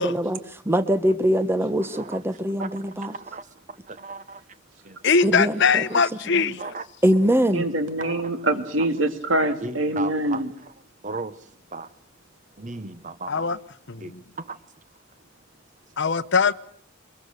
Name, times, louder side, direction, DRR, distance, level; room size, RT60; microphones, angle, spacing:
voice 1, 0.0-3.1 5.2-6.0 6.3-6.5 7.0-7.7, equal, 10° right, 1.0 m, -23 dB
voice 2, 1.8-2.2 2.6-4.4 4.8-5.0 5.5-5.7 6.5-6.8 8.0-8.5 9.6-10.7 11.0-11.9 12.6-13.5 14.0-14.6, right 3 dB, 40° right, 1.2 m, -37 dB
voice 3, 5.0-6.6 13.3-13.6 13.9-14.0 16.0-16.5, left 5 dB, 60° left, 0.9 m, -21 dB
voice 4, 7.5-10.5, right 1 dB, 70° right, 2.6 m, -24 dB
23.5 x 22.5 x 6.6 m
head